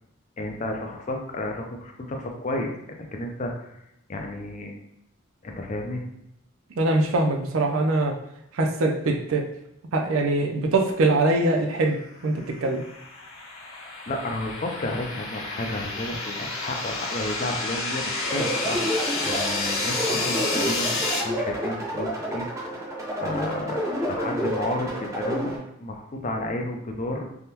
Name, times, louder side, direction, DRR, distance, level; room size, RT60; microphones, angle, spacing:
voice 1, 0.4-2.7 3.0-3.7 4.1-4.7 5.4-6.0 14.1-22.5 23.2-25.5 25.8-27.2, left 1 dB, 35° left, 2 dB, 0.4 m, -32 dB
voice 2, 6.8-8.2 8.5-9.4 9.9-12.0 12.2-12.8, right 2 dB, 75° right, 3 dB, 0.5 m, -22 dB
sound 1, 12.2-21.2, left 3 dB, 70° left, 1.0 m, -30 dB
sound 2, 18.2-25.6, equal, 15° right, 0.7 m, -29 dB
3.4 x 2.2 x 2.8 m, 0.79 s
head